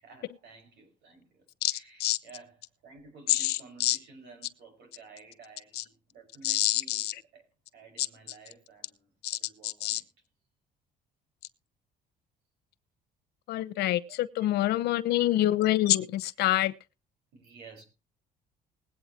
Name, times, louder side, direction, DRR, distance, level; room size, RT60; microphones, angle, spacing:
voice 1, 0.0-1.4 1.7-10.0 14.1-14.5 17.3-17.8, right 4 dB, 80° right, 5.7 m, -53 dB
voice 2, 1.6-2.2 3.3-4.0 5.8-5.9 6.4-7.1 8.0-8.1 9.2-10.0 13.5-16.7, left 15 dB, 75° left, 0.9 m, -27 dB
20.5 x 8.7 x 3.0 m
cardioid pair, 110°, 17 cm